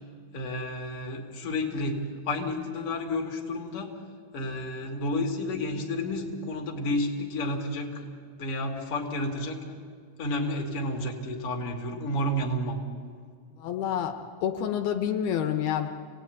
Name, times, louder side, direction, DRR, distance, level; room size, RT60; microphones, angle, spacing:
voice 1, 0.3-2.0 2.3-3.9 4.3-8.1 8.4-9.6 10.2-12.8, left 1 dB, 40° left, 1 dB, 3.0 m, -31 dB
voice 2, 13.6-15.9, left 9 dB, 80° left, 5 dB, 3.1 m, -28 dB
27.5 x 18.5 x 9.5 m, 2.1 s
omnidirectional pair, 4.5 m